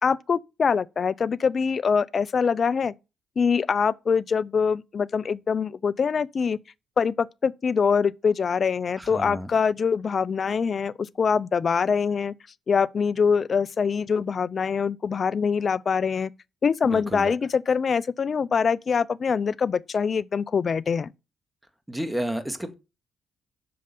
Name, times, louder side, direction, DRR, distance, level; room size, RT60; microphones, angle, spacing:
voice 1, 0.0-2.9 3.4-6.6 7.0-12.3 12.7-16.3 16.6-21.1, left 6 dB, 45° left, 0.6 m, -24 dB
voice 2, 9.0-9.5 16.8-17.3 21.9-22.7, right 1 dB, 5° right, 2.0 m, -31 dB
7.9 x 6.7 x 6.8 m
cardioid pair, 75°, 0 cm